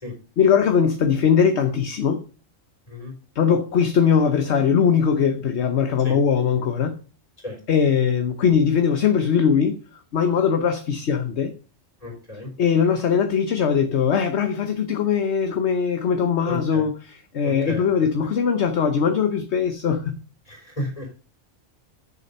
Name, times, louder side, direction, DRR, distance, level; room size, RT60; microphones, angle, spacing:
voice 1, 0.4-2.2 3.3-7.0 7.7-9.8 10.1-11.5 12.6-20.2, left 7 dB, 60° left, 1.2 m, -20 dB
voice 2, 12.0-12.5 16.5-16.9 17.4-18.1 20.5-21.1, left 1 dB, 30° left, 4.0 m, -33 dB
8.3 x 7.0 x 5.5 m
omnidirectional pair, 1.3 m